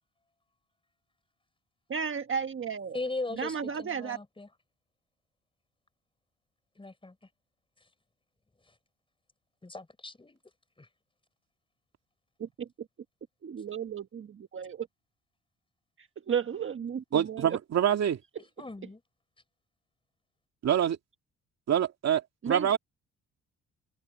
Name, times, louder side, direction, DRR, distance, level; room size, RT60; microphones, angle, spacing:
voice 1, 1.9-3.0 3.3-4.2 12.4-12.7 13.4-14.9 16.0-17.6 22.4-22.8, right 7 dB, 40° right, 1.4 m, -34 dB
voice 2, 2.9-4.5 6.8-7.1 9.6-10.4 10.8-10.9 18.6-19.0, left 2 dB, 15° left, 4.9 m, -38 dB
voice 3, 17.1-18.2 20.6-21.0 21.7-22.8, right 9 dB, 60° right, 2.3 m, -26 dB
cardioid pair, 90°, 30 cm